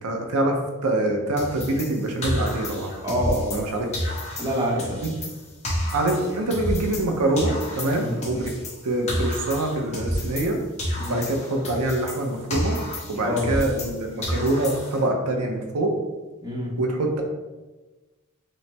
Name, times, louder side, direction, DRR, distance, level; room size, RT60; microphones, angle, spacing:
voice 1, 0.0-2.9 3.5-3.9 5.0-5.1 5.9-8.6 8.8-10.6 11.1-12.8 13.1-15.9 16.8-17.2, right 1 dB, 85° right, 2 dB, 0.6 m, -25 dB
sound 1, 1.4-3.7 3.9-7.1 7.4-10.5 10.8-13.9 14.2-15.1, equal, 30° left, 1.0 m, -30 dB
voice 2, 3.0-3.6 4.4-5.0 7.9-8.2 11.0-11.2 13.2-13.5 16.4-16.7, equal, 15° right, -3 dB, 0.8 m, -26 dB
5.3 x 2.0 x 3.3 m, 1.2 s
head